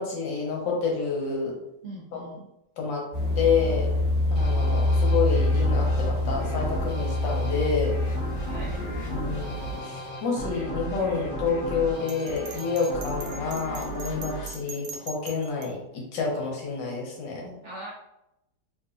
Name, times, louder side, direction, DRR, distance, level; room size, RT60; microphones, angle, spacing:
voice 1, 0.0-1.5 2.1-2.2 2.8-3.0 3.3-3.9 4.3-8.0 9.1-17.5, left 5 dB, 90° left, -2 dB, 1.7 m, -28 dB
voice 2, 1.8-2.5 8.4-8.9 9.3-9.4 17.6-17.9, right 2 dB, 65° right, -4 dB, 0.7 m, -41 dB
sound 1, 3.1-9.8, left 1 dB, 25° left, 1.4 m, -26 dB
sound 2, 4.3-15.6, equal, 70° left, 1.5 m, -36 dB
Bell, 12.1-15.7, right 4 dB, 90° right, 1.3 m, -40 dB
3.8 x 2.5 x 2.5 m, 0.85 s
omnidirectional pair, 1.9 m